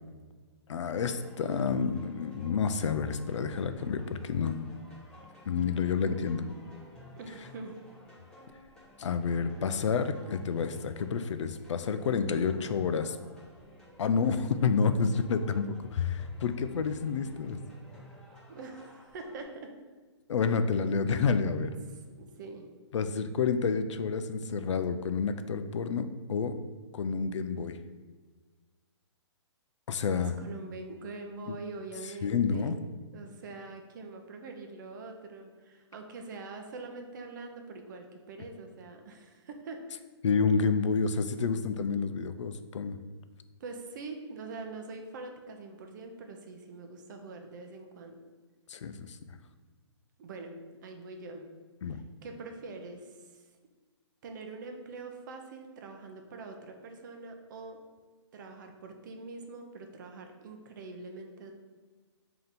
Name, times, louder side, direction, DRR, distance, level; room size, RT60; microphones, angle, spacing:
voice 1, 0.7-4.7 5.5-6.5 9.0-13.2 14.0-17.6 20.3-21.7 22.9-26.5 26.9-27.8 29.9-30.3 32.2-32.8 40.2-43.0 48.7-49.4 51.8-52.0, left 5 dB, 85° left, 10 dB, 0.4 m, -29 dB
sound 1, 0.9-19.4, left 1 dB, 5° left, 0.7 m, -53 dB
voice 2, 7.2-7.8 18.5-19.7 21.6-22.7 30.2-32.8 33.1-40.0 43.6-48.2 50.2-51.4 51.9-53.4 54.2-57.8 58.3-61.5, right 3 dB, 40° right, 4 dB, 0.5 m, -44 dB
3.3 x 2.8 x 4.0 m, 1.4 s
hypercardioid pair, 155°, 15 cm